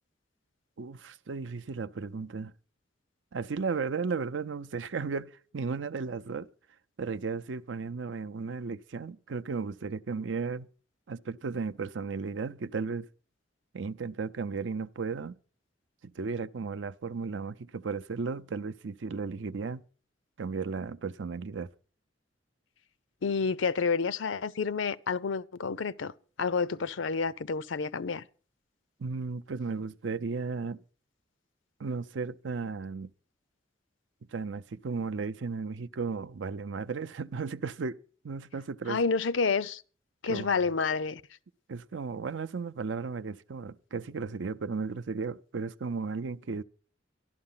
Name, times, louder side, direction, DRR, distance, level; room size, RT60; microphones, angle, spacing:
voice 1, 0.8-2.5 3.3-6.5 7.0-10.7 11.1-13.1 13.7-15.4 16.0-19.8 20.4-21.7 29.0-30.8 31.8-33.1 34.3-38.0 38.2-39.0 40.3-40.5 41.7-46.6, right 4 dB, 75° right, 0.6 m, -35 dB
voice 2, 23.2-26.1 26.4-28.2 38.9-39.8 40.2-41.2, left 5 dB, 85° left, 0.6 m, -29 dB
12.5 x 12.0 x 5.6 m
head